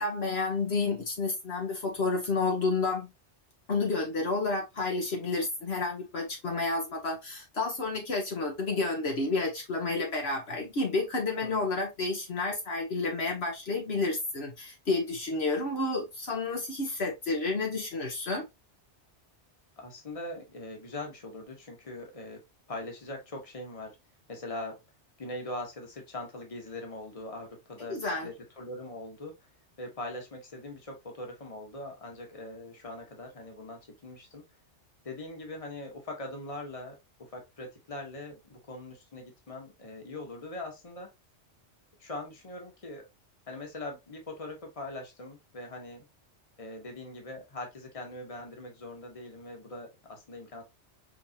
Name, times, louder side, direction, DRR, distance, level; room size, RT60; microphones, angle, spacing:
voice 1, 0.0-3.1 3.7-18.4 27.9-28.3, left 3 dB, 60° left, 1.3 m, -30 dB
voice 2, 19.8-22.4 22.7-24.0 24.3-24.8 25.2-29.5 29.8-34.4 35.0-41.1 42.0-43.0 43.5-46.0 46.6-50.6, left 2 dB, 30° left, 1.3 m, -41 dB
5.0 x 3.4 x 2.8 m
omnidirectional pair, 1.2 m